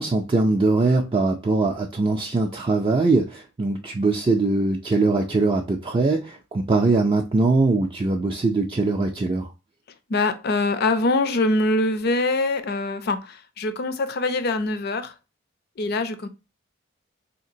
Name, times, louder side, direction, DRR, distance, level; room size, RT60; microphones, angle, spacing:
voice 1, 0.0-9.5, right 3 dB, 25° right, 0.3 m, -22 dB
voice 2, 10.1-15.1 15.8-16.3, left 2 dB, 50° left, 0.5 m, -23 dB
3.6 x 2.8 x 2.6 m
head